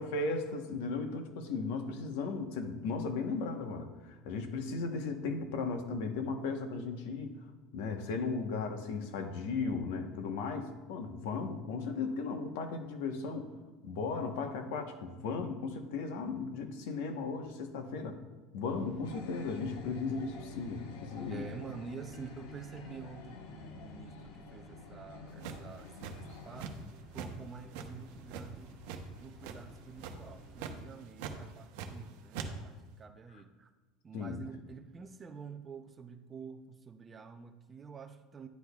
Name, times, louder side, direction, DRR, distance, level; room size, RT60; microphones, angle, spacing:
voice 1, 0.0-7.3 7.7-13.5 13.8-18.2 18.5-21.4 34.1-34.4, left 4 dB, 65° left, 6 dB, 1.0 m, -36 dB
sound 1, 18.7-30.8, equal, 20° left, 1.2 m, -55 dB
sound 2, 19.0-26.7, left 3 dB, 90° left, 0.9 m, -49 dB
voice 2, 21.3-28.8 29.2-33.7 34.0-38.5, right 5 dB, 15° right, 7 dB, 0.4 m, -48 dB
sound 3, 25.4-26.9 27.1-27.3 27.7-29.0 29.4-29.7 30.0-30.2 30.6-30.7 31.2-32.0 32.3-32.5, right 6 dB, 65° right, 0.8 m, -41 dB
10.5 x 9.9 x 2.3 m, 1.2 s
cardioid pair, 175°, 0 cm